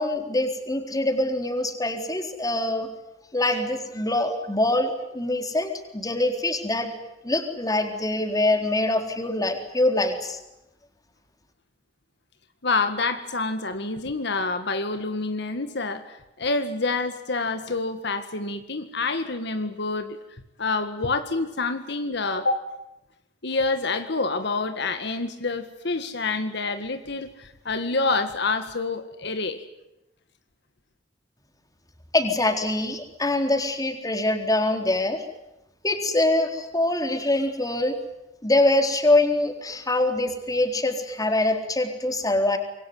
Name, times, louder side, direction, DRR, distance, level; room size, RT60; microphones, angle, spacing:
voice 1, 0.0-2.9 3.3-6.9 7.2-10.4 32.1-35.2 35.8-37.9 38.4-42.6, left 2 dB, 20° left, 5 dB, 3.9 m, -24 dB
voice 2, 12.6-20.2 20.6-22.6 23.4-29.6, left 3 dB, 65° left, 8 dB, 1.9 m, -27 dB
26.5 x 23.0 x 9.5 m, 0.91 s
head